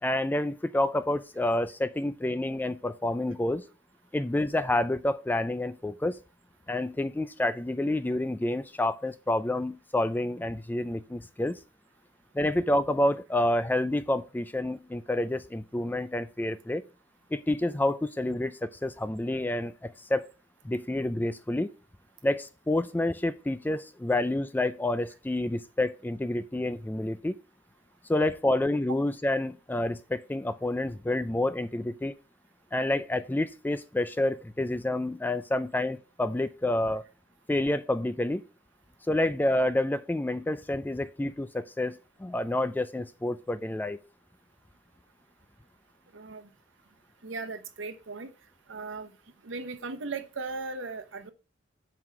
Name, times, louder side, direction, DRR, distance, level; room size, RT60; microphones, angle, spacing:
voice 1, 0.0-3.7 4.1-6.2 6.7-11.6 12.3-16.8 17.3-20.2 20.6-21.7 22.2-27.4 28.1-32.1 32.7-37.0 37.5-38.4 39.1-44.0, left 1 dB, 10° left, 0.3 m, -28 dB
voice 2, 46.1-46.5 47.2-48.3 48.7-49.1 49.4-51.3, right 3 dB, 80° right, 0.9 m, -37 dB
5.6 x 4.8 x 5.7 m
head